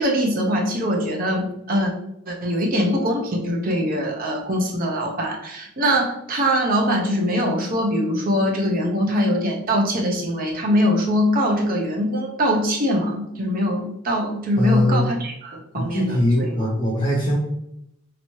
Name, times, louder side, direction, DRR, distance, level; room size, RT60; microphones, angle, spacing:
voice 1, 0.0-1.9 2.3-16.7, equal, 40° right, 0 dB, 0.7 m, -22 dB
voice 2, 14.6-15.1 15.7-17.4, left 1 dB, 25° left, -2 dB, 0.4 m, -21 dB
3.3 x 2.9 x 3.0 m, 0.81 s
head